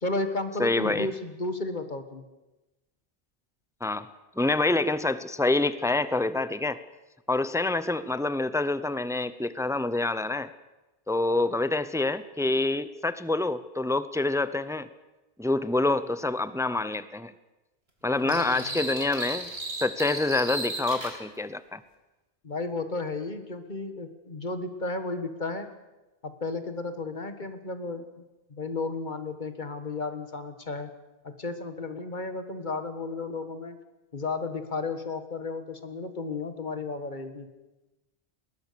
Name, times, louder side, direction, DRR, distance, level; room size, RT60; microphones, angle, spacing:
voice 1, 0.0-2.2 18.2-18.8 22.4-25.7 26.2-28.0 28.5-30.9 31.2-33.8 34.1-37.5, left 3 dB, 50° left, 9 dB, 1.7 m, -33 dB
voice 2, 0.6-1.1 3.8-4.1 4.4-6.8 7.3-10.5 11.1-14.9 15.4-17.3 18.0-19.5 19.8-21.8, left 2 dB, 5° right, 15 dB, 0.5 m, -27 dB
sound 1, 18.3-21.2, right 2 dB, 85° right, 3.3 m, -35 dB
21.5 x 19.0 x 6.8 m, 1.0 s
omnidirectional pair, 1.0 m